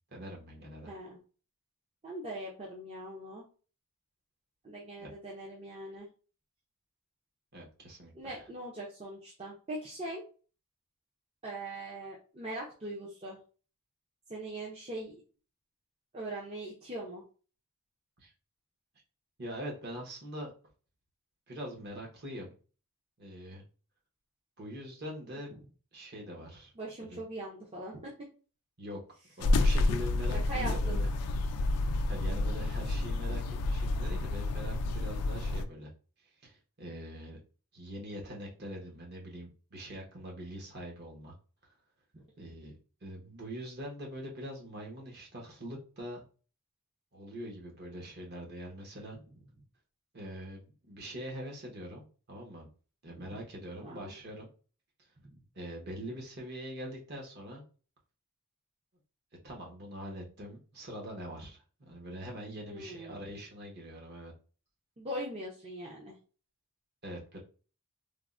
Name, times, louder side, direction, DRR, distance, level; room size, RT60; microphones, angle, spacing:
voice 1, 0.1-0.9 5.0-5.1 7.5-8.4 18.2-18.3 19.4-20.5 21.5-22.5 23.2-23.6 24.6-25.5 25.9-26.7 27.0-27.2 28.8-29.0 29.4-31.1 32.1-35.9 36.4-37.4 37.7-41.3 42.4-46.2 47.1-49.2 50.1-52.7 53.0-54.5 55.5-57.6 59.4-61.6 61.9-64.3 67.0-67.4, equal, 45° right, -1 dB, 0.9 m, -43 dB
voice 2, 0.9-1.2 2.0-3.4 4.6-6.1 8.1-10.2 11.4-13.4 14.3-15.1 16.1-17.2 25.5-25.6 26.8-28.1 30.5-31.0 42.1-42.2 53.1-53.3 53.8-54.1 55.2-55.4 62.7-63.2 65.0-66.2, right 1 dB, 25° right, -4 dB, 0.5 m, -41 dB
sound 1, 29.4-35.7, left 2 dB, 90° left, 0.3 m, -29 dB
3.4 x 2.0 x 2.4 m, 0.37 s
head